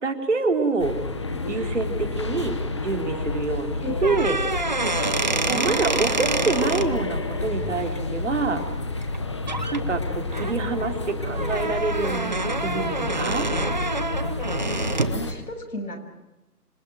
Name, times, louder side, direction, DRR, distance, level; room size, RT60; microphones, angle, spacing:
voice 1, 0.0-0.9 1.5-2.6 2.8-4.4 5.5-8.6 9.7-13.5, right 4 dB, 50° right, 5 dB, 3.9 m, -26 dB
sound 1, 0.8-15.3, left 3 dB, 20° left, 1.2 m, -29 dB
sound 2, 4.0-6.9 9.0-9.2 9.5-9.8 10.3-15.2, right 3 dB, 30° right, 0.9 m, -27 dB
voice 2, 5.5-6.5 14.4-16.0, left 1 dB, 70° left, 4 dB, 7.5 m, -35 dB
27.0 x 23.0 x 9.3 m, 0.97 s
figure-of-eight pair, 165°, 47 cm